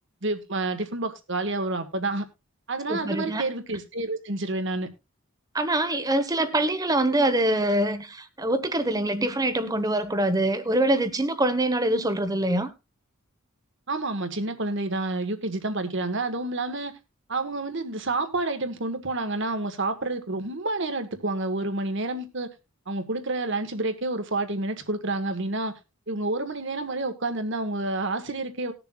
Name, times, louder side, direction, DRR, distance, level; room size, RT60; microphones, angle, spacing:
voice 1, 0.2-2.2 2.7-4.9 13.9-16.9 17.3-22.5 22.9-25.7 26.1-28.7, right 2 dB, 60° right, 1.6 m, -29 dB
voice 2, 2.9-3.5 5.5-12.7, right 1 dB, 15° right, 1.1 m, -24 dB
20.0 x 6.9 x 2.4 m
head